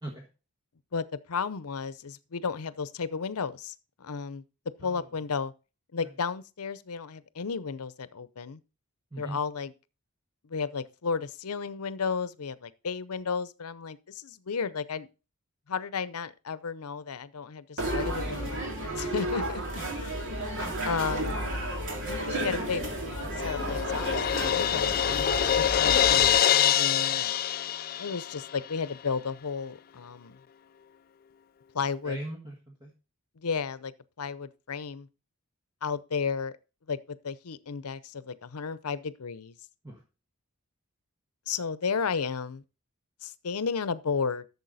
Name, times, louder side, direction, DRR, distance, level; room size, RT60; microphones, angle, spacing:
voice 1, 0.9-4.4 4.8-5.5 5.9-8.6 9.2-9.7 10.4-15.1 15.7-19.6 20.8-21.4 22.1-22.8 23.4-27.3 28.0-30.4 31.7-32.2 33.4-33.9 34.2-35.1 35.8-36.5 36.9-39.6 41.5-42.6 43.2-44.5, left 5 dB, 85° left, 0.7 m, -33 dB
sound 1, 17.8-26.3, right 1 dB, 60° right, 3.0 m, -32 dB
voice 2, 20.5-20.9 21.2-21.4 32.0-32.9 39.8-40.0, right 1 dB, 20° right, 1.6 m, -41 dB
Crash cymbal, 22.8-28.5, left 10 dB, 45° left, 0.4 m, -25 dB
12.0 x 7.0 x 4.1 m
head